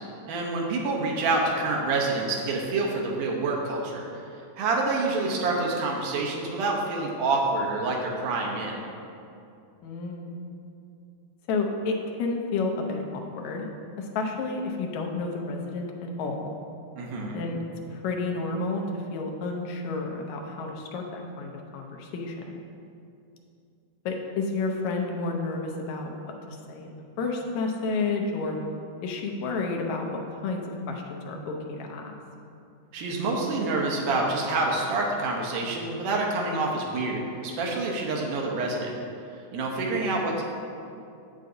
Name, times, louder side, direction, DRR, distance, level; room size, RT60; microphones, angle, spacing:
voice 1, 0.3-4.1 4.6-8.8 17.0-17.4 32.9-38.9 39.5-40.4, right 3 dB, 80° right, -1 dB, 2.4 m, -27 dB
voice 2, 9.8-10.3 11.5-13.7 14.0-15.9 16.2-16.5 17.3-17.6 17.9-22.6 24.0-28.6 29.0-32.2 39.9-40.0, left 3 dB, 75° left, 1 dB, 1.8 m, -31 dB
7.5 x 7.4 x 2.7 m, 2.6 s
omnidirectional pair, 3.7 m